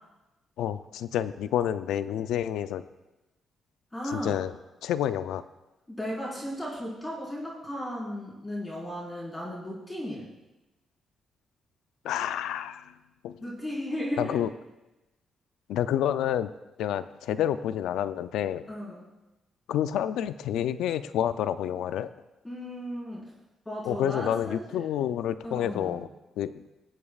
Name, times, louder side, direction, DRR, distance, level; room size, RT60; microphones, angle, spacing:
voice 1, 0.6-2.8 4.1-4.5 4.8-5.4 12.0-12.9 13.2-13.4 14.2-14.5 15.7-16.5 16.8-18.6 19.7-22.1 23.9-26.1 26.4-26.5, left 10 dB, 90° left, 13 dB, 0.4 m, -29 dB
voice 2, 3.9-4.4 5.9-10.3 13.4-14.5 18.7-19.1 22.4-23.3 23.6-24.8 25.4-26.0, equal, 15° left, -6 dB, 4.5 m, -35 dB
22.5 x 8.3 x 2.4 m, 1.0 s
cardioid pair, 90°, 0 cm